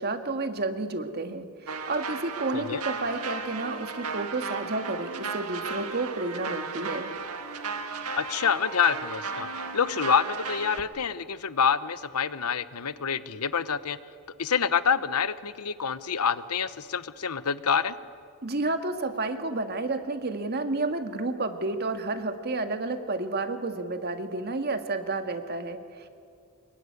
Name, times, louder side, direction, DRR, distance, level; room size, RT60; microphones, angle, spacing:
voice 1, 0.0-7.1 18.4-26.1, right 2 dB, 45° right, 7 dB, 1.7 m, -31 dB
sound 1, 1.7-10.8, right 4 dB, 80° right, 1.7 m, -35 dB
voice 2, 2.5-2.8 8.2-14.0 14.4-17.9, left 6 dB, 85° left, 14 dB, 0.9 m, -27 dB
25.0 x 22.5 x 9.7 m, 2.4 s
head